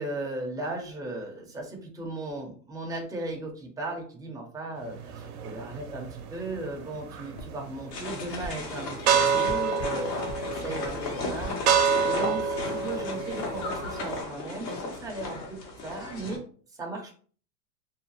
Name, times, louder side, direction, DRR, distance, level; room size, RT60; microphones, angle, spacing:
voice 1, 0.0-15.4 15.8-16.4 16.8-17.1, right 2 dB, 10° right, 0 dB, 0.6 m, -37 dB
sound 1, 4.9-14.2, right 6 dB, 65° right, 0.7 m, -29 dB
sound 2, 7.4-7.5 8.4-8.6 9.5-10.0 10.3-10.4 10.8-11.0 11.4-11.6, equal, 45° left, 0.7 m, -39 dB
sound 3, 7.9-16.4, left 3 dB, 75° left, 1.3 m, -35 dB
2.8 x 2.1 x 2.9 m, 0.43 s
hypercardioid pair, 110°, 48 cm